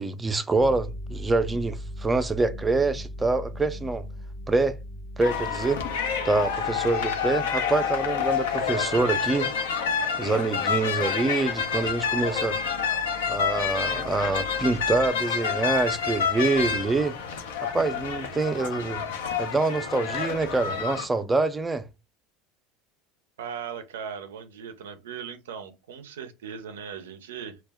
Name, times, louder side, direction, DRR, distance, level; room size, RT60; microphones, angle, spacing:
voice 1, 0.0-4.0 4.5-4.8 5.2-5.8 6.2-9.5 10.2-12.6 13.3-17.2 17.7-19.0 19.4-21.8, right 3 dB, 20° right, 0.4 m, -25 dB
sound 1, 0.6-10.3 11.2-15.1, equal, 40° left, 0.6 m, -41 dB
sound 2, 5.2-21.0, left 6 dB, 85° left, 0.5 m, -28 dB
voice 2, 23.4-27.6, right 7 dB, 85° right, 0.4 m, -38 dB
2.2 x 2.0 x 3.3 m
hypercardioid pair, 90°, 0 cm